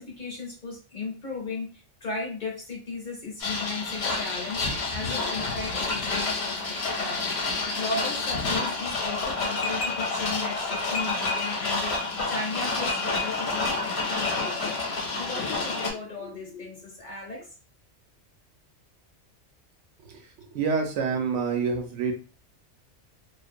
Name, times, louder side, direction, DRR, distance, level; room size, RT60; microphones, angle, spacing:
voice 1, 0.0-17.5, left 3 dB, 50° left, -1 dB, 0.7 m, -36 dB
sound 1, 3.4-15.9, left 3 dB, 65° left, 1.0 m, -29 dB
voice 2, 20.5-22.1, right 5 dB, 75° right, 4 dB, 0.9 m, -26 dB
2.4 x 2.1 x 2.5 m, 0.35 s
omnidirectional pair, 1.2 m